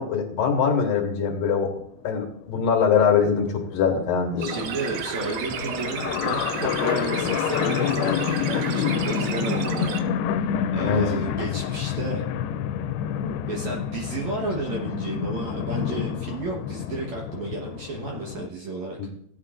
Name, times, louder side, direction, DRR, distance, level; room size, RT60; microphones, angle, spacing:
voice 1, 0.0-1.7 2.0-4.5 10.8-11.1 19.0-19.1, left 6 dB, 70° left, 1 dB, 3.1 m, -22 dB
sound 1, 2.0-2.1 2.4-2.5 2.6-18.5, left 9 dB, 90° left, 2.6 m, -28 dB
voice 2, 4.4-10.0 10.7-12.2 13.5-19.1, right 3 dB, 65° right, -1 dB, 2.0 m, -32 dB
sound 2, 4.4-10.0, right 9 dB, 85° right, 2.9 m, -33 dB
16.5 x 8.8 x 2.5 m, 0.68 s
omnidirectional pair, 4.5 m